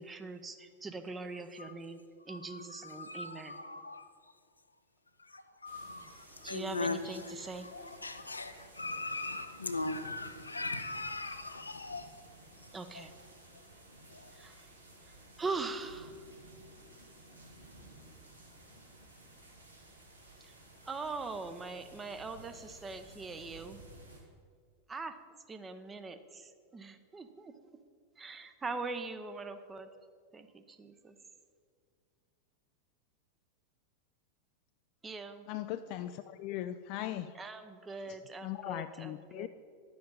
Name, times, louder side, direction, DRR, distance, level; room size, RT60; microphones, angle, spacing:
voice 1, 0.0-2.0 2.3-3.6 6.4-7.7 12.7-13.1 14.3-14.7 15.0-16.2 20.4-20.5 20.8-23.8 24.9-25.2 25.5-27.5 28.2-29.9 30.3-31.1 35.0-35.5 37.3-39.5, right 3 dB, 15° right, 9 dB, 0.7 m, -42 dB
voice 2, 2.3-4.3 5.2-12.1 12.6-12.7 12.9-13.1 13.5-14.6, left 3 dB, 80° left, 9 dB, 0.6 m, -40 dB
sound 1, 5.6-24.2, right 2 dB, 85° right, 2.0 m, -56 dB
voice 3, 35.5-37.4 38.1-39.5, left 13 dB, 45° left, 9 dB, 0.3 m, -39 dB
11.0 x 7.8 x 5.4 m, 2.2 s
figure-of-eight pair, 90°, 0 cm